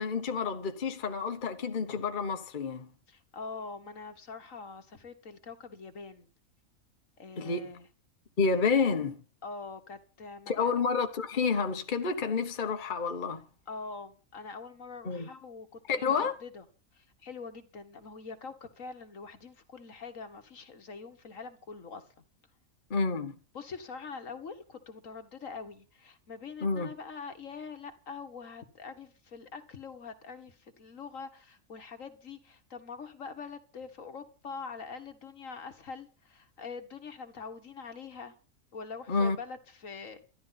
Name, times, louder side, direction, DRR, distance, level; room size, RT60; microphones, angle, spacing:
voice 1, 0.0-2.9 7.4-7.7 8.4-9.2 10.5-13.4 15.0-15.3 15.9-16.3 22.9-23.4 26.6-26.9 39.1-39.4, left 5 dB, 40° left, 1.3 m, -29 dB
voice 2, 3.1-6.3 7.2-7.9 9.4-10.7 13.7-16.0 16.4-16.6 17.0-22.0 23.5-38.3 38.7-40.2, left 4 dB, 70° left, 2.0 m, -44 dB
13.0 x 11.0 x 5.8 m
omnidirectional pair, 1.4 m